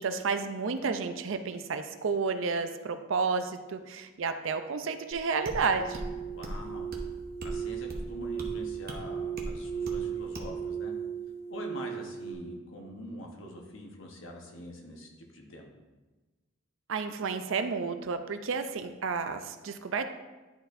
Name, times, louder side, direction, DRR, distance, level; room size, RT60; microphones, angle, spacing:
voice 1, 0.0-6.1 16.9-20.1, right 5 dB, 65° right, 9 dB, 0.5 m, -31 dB
sound 1, 5.1-5.2 5.4-5.6 5.9-6.1 6.4-6.6 6.9-7.1 7.4-7.6 7.9-8.1 8.4-8.5 8.9-9.0 9.4-9.5 9.9-10.0 10.3-10.5, right 1 dB, 45° right, 0.9 m, -38 dB
sound 2, 5.7-12.3, right 7 dB, 35° left, 1.6 m, -36 dB
voice 2, 6.3-6.9 7.4-10.9 11.5-15.7, left 1 dB, 65° left, 1 dB, 1.1 m, -44 dB
11.0 x 4.2 x 2.6 m, 1.2 s
head